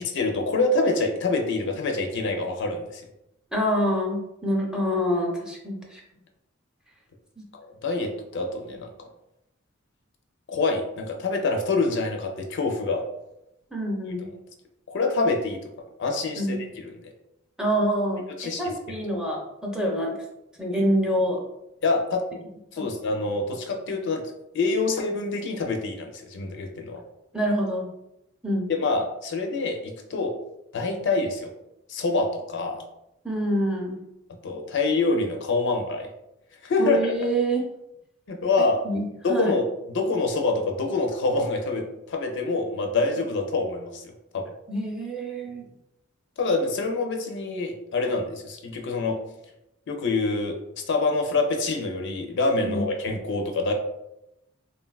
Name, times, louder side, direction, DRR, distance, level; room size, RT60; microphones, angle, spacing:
voice 1, 0.0-3.0 7.6-8.9 10.5-13.0 14.9-15.7 16.0-16.6 16.8-17.1 18.4-18.7 21.8-22.2 22.7-24.2 24.5-27.0 28.7-30.3 30.7-31.5 31.9-32.8 34.4-36.1 36.6-37.1 38.3-38.8 39.2-44.5 46.4-49.2 49.9-50.6 50.9-53.7, left 3 dB, 60° left, 3 dB, 0.4 m, -26 dB
voice 2, 3.5-6.0 7.4-7.5 13.7-14.3 16.4-16.6 17.6-20.1 20.6-21.4 22.8-22.9 27.3-27.9 28.4-28.7 33.2-34.0 36.8-37.6 38.8-39.5 44.7-45.6 52.6-52.8, equal, 5° right, -2 dB, 0.5 m, -26 dB
3.5 x 2.2 x 2.3 m, 0.86 s
head